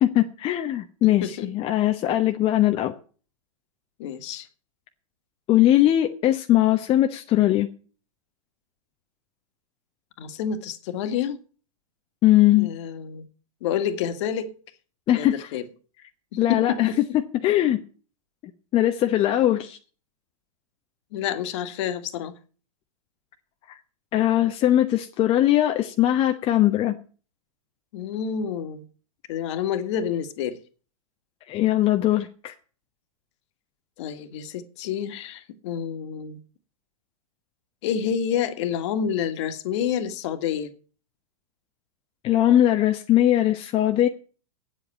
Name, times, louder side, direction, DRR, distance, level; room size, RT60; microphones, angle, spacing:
voice 1, 0.0-2.9 5.5-7.7 12.2-12.7 15.1-15.5 16.4-17.8 18.7-19.8 24.1-27.0 31.5-32.5 42.2-44.1, left 13 dB, 30° left, 5 dB, 1.0 m, -20 dB
voice 2, 4.0-4.5 10.2-11.4 12.6-13.3 13.6-14.5 15.1-15.7 16.5-17.0 21.1-22.3 27.9-28.8 29.3-30.6 34.0-36.4 37.8-40.7, left 8 dB, 55° left, 9 dB, 1.9 m, -28 dB
9.1 x 8.0 x 8.6 m, 0.39 s
hypercardioid pair, 110°, 18 cm